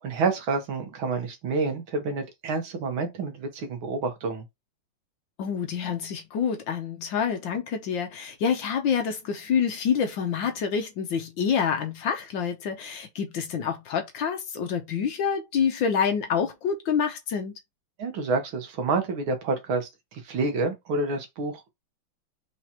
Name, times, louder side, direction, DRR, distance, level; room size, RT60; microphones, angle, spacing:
voice 1, 0.0-4.4 18.0-21.7, right 3 dB, 70° right, 1.9 m, -28 dB
voice 2, 5.4-17.5, left 7 dB, 65° left, 1.4 m, -27 dB
4.7 x 3.9 x 2.9 m
omnidirectional pair, 2.4 m